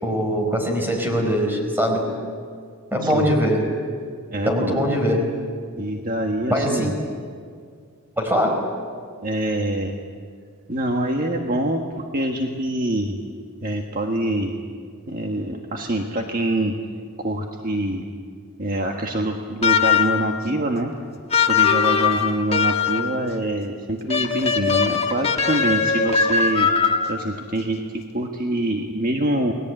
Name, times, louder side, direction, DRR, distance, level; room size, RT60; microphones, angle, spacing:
voice 1, 0.0-2.1 2.9-3.7 4.4-5.3 6.5-6.9 8.2-8.6, equal, 10° right, 2 dB, 4.8 m, -21 dB
voice 2, 3.0-3.3 4.3-4.7 5.8-6.9 9.2-10.0 10.7-13.2 13.6-14.5 15.1-16.7 17.2-18.1 18.6-20.9 21.5-26.7 27.1-29.5, right 1 dB, 40° right, 2 dB, 1.5 m, -25 dB
sound 1, 19.6-20.3 21.3-23.1 24.1-27.3, left 6 dB, 25° left, 1.5 m, -20 dB
29.0 x 20.5 x 9.1 m, 2.1 s
head